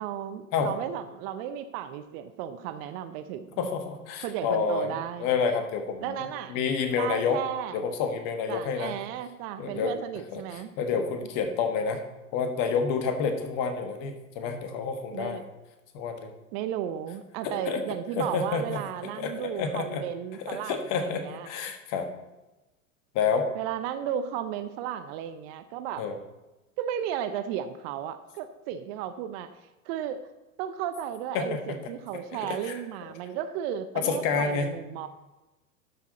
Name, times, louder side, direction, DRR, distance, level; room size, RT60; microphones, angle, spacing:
voice 1, 0.0-3.7 4.2-5.3 6.0-6.6 7.0-7.9 8.5-11.2 15.1-15.4 16.5-21.5 23.5-26.0 26.8-29.5 29.9-30.2 30.6-35.1, right 10 dB, 45° right, 11 dB, 0.7 m, -34 dB
voice 2, 3.6-7.4 7.7-9.0 9.6-9.9 10.3-12.0 12.3-15.4 15.9-16.3 17.4-17.8 18.2-18.8 19.2-20.0 20.4-22.1 23.1-23.5 26.0-26.2 31.3-31.8 32.4-32.8 34.0-34.7, left 5 dB, 45° left, 6 dB, 1.5 m, -29 dB
12.0 x 6.0 x 4.1 m, 1.0 s
hypercardioid pair, 90°, 43 cm